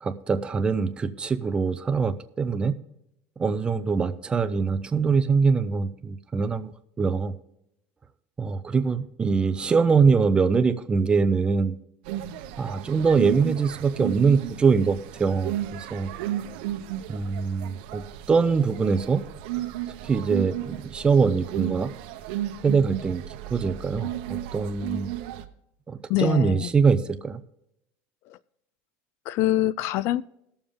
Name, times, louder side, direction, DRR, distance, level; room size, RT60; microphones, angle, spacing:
voice 1, 0.0-2.7 3.4-6.7 7.0-7.3 8.4-11.8 12.6-16.1 17.1-19.2 20.0-21.9 22.6-23.2 23.5-25.1 25.9-27.4, right 5 dB, 20° right, 0.6 m, -23 dB
sound 1, 12.0-25.4, right 12 dB, 80° right, 0.9 m, -34 dB
voice 2, 26.1-26.7 28.3-28.4 29.3-30.2, left 14 dB, 55° left, 0.4 m, -25 dB
18.5 x 7.1 x 3.6 m
cardioid pair, 145°, 5 cm